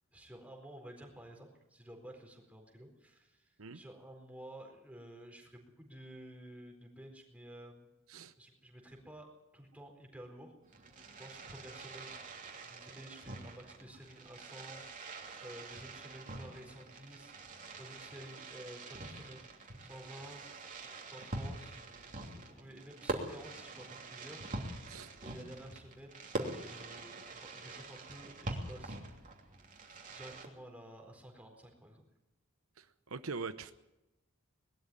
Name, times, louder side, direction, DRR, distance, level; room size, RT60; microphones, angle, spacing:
voice 1, 0.1-7.9 8.4-12.2 12.6-15.0 15.4-19.5 19.8-20.4 21.0-21.8 22.3-24.5 25.2-29.2 30.1-32.0, right 1 dB, 5° right, 1 dB, 4.3 m, -52 dB
Fireworks, 10.6-30.4, right 2 dB, 40° right, 3.0 m, -45 dB
voice 2, 32.8-33.7, right 4 dB, 85° right, 10 dB, 0.9 m, -42 dB
20.5 x 13.0 x 9.9 m, 0.97 s
head